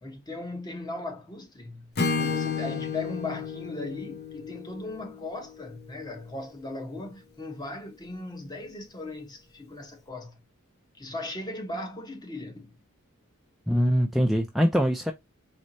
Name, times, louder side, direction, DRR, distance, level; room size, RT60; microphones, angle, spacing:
voice 1, 0.0-10.3 11.0-12.8, left 2 dB, 20° left, 0.9 m, -38 dB
Acoustic guitar / Strum, 2.0-5.9, left 5 dB, 50° left, 0.8 m, -32 dB
voice 2, 13.7-15.1, equal, ahead, 0.4 m, -23 dB
4.4 x 3.1 x 2.6 m
head